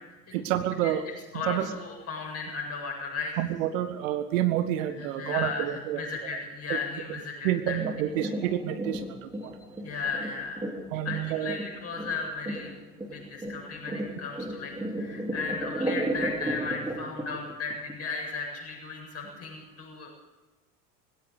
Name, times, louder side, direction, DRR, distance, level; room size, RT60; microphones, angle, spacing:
voice 1, 0.3-1.0 1.5-1.7 3.4-6.0 6.7-6.8 7.4-9.5 10.9-11.5, right 12 dB, 55° right, 10 dB, 1.5 m, -29 dB
voice 2, 1.3-3.3 4.9-7.8 9.8-10.8 11.0-12.8 13.0-20.1, left 4 dB, 30° left, 0 dB, 7.8 m, -35 dB
sound 1, 7.7-17.9 18.3-18.4, right 1 dB, 10° right, 3.7 m, -34 dB
20.0 x 16.5 x 8.1 m, 1.2 s
figure-of-eight pair, 75°, 47 cm